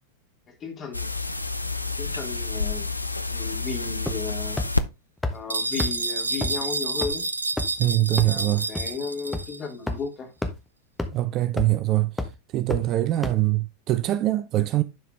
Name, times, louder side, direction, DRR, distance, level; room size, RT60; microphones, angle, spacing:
voice 1, 0.5-1.1 2.0-2.9 3.3-4.6 5.3-7.3 8.2-10.3, left 4 dB, 25° left, 2.6 m, -34 dB
sound 1, 0.9-4.8 7.1-7.2, left 3 dB, 85° left, 0.5 m, -29 dB
sound 2, 4.1-4.3 4.6-4.7 5.2-5.3 5.8-5.9 6.4-6.5 7.0-7.1 7.6-7.8 8.2-8.3 8.7-8.8 9.3-9.4 9.9-10.0 10.4-10.5 11.0-11.1 11.6-11.8 12.2-12.3 12.7-12.8 13.2-13.3, left 2 dB, 5° left, 1.1 m, -27 dB
sound 3, 5.5-9.6, right 2 dB, 80° right, 0.6 m, -29 dB
voice 2, 7.8-8.7 11.1-12.1 12.5-14.8, right 15 dB, 35° right, 0.5 m, -23 dB
10.5 x 4.8 x 3.3 m
figure-of-eight pair, 90°, 0 cm